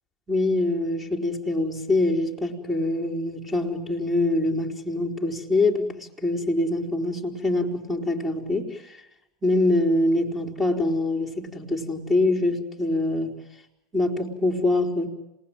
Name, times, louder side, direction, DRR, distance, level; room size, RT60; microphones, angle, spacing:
voice 1, 0.3-8.8 9.4-13.4 13.9-15.1, left 2 dB, 15° right, 2 dB, 4.3 m, -24 dB
27.0 x 19.5 x 9.1 m, 0.87 s
hypercardioid pair, 95°, 0 cm